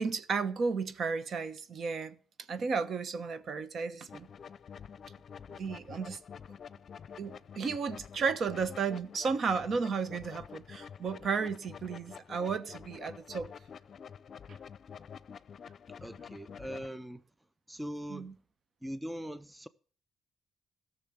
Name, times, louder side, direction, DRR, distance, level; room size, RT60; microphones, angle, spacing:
voice 1, 0.0-2.2 2.5-4.3 5.5-6.2 7.2-13.5 14.5-14.6 18.1-18.3, right 5 dB, 55° right, 1.1 m, -33 dB
sound 1, 4.1-16.9, left 7 dB, 50° left, 0.6 m, -48 dB
voice 2, 16.0-17.2 17.7-18.3 18.8-19.7, equal, 10° right, 0.6 m, -41 dB
14.0 x 6.6 x 8.7 m
cardioid pair, 90°, 0 cm